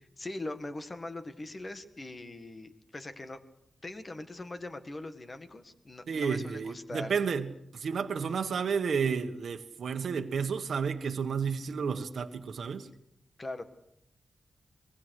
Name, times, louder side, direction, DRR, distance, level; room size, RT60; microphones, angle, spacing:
voice 1, 0.2-3.4 3.8-7.2 13.4-13.6, left 2 dB, 25° left, 9 dB, 1.9 m, -41 dB
voice 2, 6.1-12.9, right 6 dB, 65° right, 6 dB, 1.6 m, -31 dB
25.0 x 22.0 x 6.6 m, 0.78 s
wide cardioid pair, 155°, 0 cm